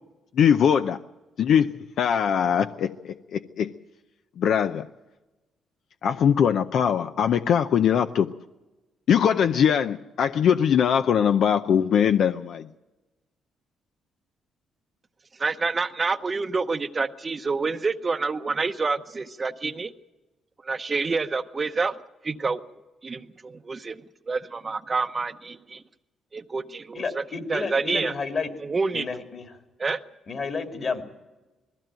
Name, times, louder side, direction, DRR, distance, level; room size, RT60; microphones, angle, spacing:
voice 1, 0.4-1.0 1.4-3.7 4.4-4.9 6.0-8.3 9.1-12.7, left 8 dB, 70° left, 9 dB, 0.6 m, -21 dB
voice 2, 15.4-19.9 20.6-21.9 22.2-22.6 23.0-25.8 26.3-28.1 28.6-29.1 29.8-30.0, right 4 dB, 30° right, 9 dB, 0.8 m, -28 dB
voice 3, 26.9-28.5 28.9-29.5 30.3-31.0, left 4 dB, 45° left, 5 dB, 2.7 m, -31 dB
20.0 x 15.0 x 9.0 m, 1.1 s
cardioid pair, 90°, 0 cm